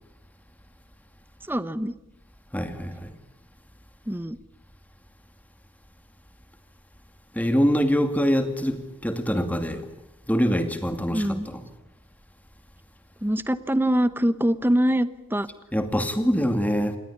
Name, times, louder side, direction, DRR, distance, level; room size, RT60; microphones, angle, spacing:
voice 1, 1.4-2.0 4.1-4.4 11.1-11.5 13.2-15.5, equal, 10° right, 0.9 m, -24 dB
voice 2, 2.5-3.1 7.4-9.8 10.3-11.2 15.7-17.0, equal, 5° left, 2.3 m, -24 dB
27.5 x 20.5 x 8.7 m
head